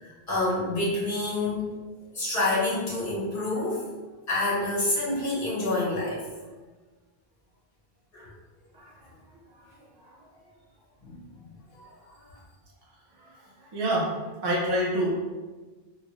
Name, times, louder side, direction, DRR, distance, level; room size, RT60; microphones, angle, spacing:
voice 1, 0.0-1.6 2.1-3.8 4.3-6.5 8.1-8.3 11.0-11.3 11.7-11.9 12.2-12.3, left 2 dB, 60° left, -7 dB, 1.4 m, -28 dB
voice 2, 8.7-9.1 9.5-10.4 13.2-15.2, right 1 dB, 35° right, -3 dB, 0.4 m, -30 dB
3.8 x 2.3 x 3.0 m, 1.3 s
omnidirectional pair, 1.1 m